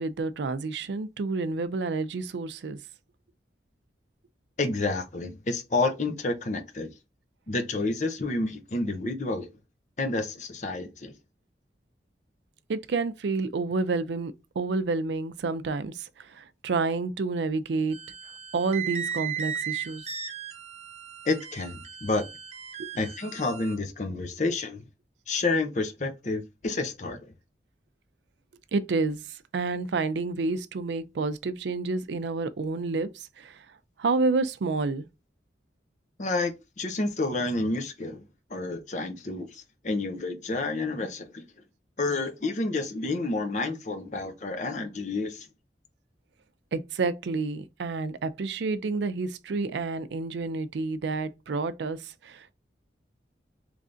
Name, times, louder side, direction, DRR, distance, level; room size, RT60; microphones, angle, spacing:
voice 1, 0.0-2.8 12.7-18.0 18.5-20.0 22.8-22.9 28.7-29.2 29.5-33.6 34.0-35.0 46.7-52.5, right 3 dB, 80° right, 0.4 m, -29 dB
voice 2, 4.6-6.9 7.5-9.5 10.0-11.1 21.3-22.2 23.0-24.8 25.3-27.3 36.2-38.2 38.5-41.4 42.0-45.5, left 3 dB, 40° left, 0.6 m, -29 dB
sound 1, 17.9-23.7, right 8 dB, 40° right, 0.7 m, -36 dB
3.7 x 3.2 x 2.5 m
head